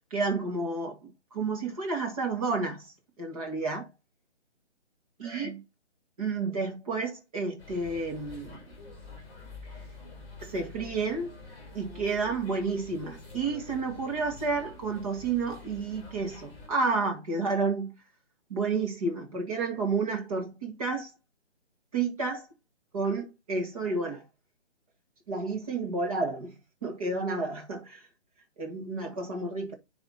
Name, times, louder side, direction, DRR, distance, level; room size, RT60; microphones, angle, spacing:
voice 1, 0.1-2.9 3.2-3.9 5.2-5.6 6.2-8.6 10.4-11.3 11.7-17.9 18.5-21.1 21.9-22.5 22.9-24.2 25.3-26.5 26.8-28.0 28.6-29.7, right 4 dB, 30° right, 2.0 m, -31 dB
sound 1, 7.6-16.7, left 3 dB, 10° left, 3.8 m, -47 dB
10.5 x 3.5 x 4.0 m
hypercardioid pair, 170°, 35 cm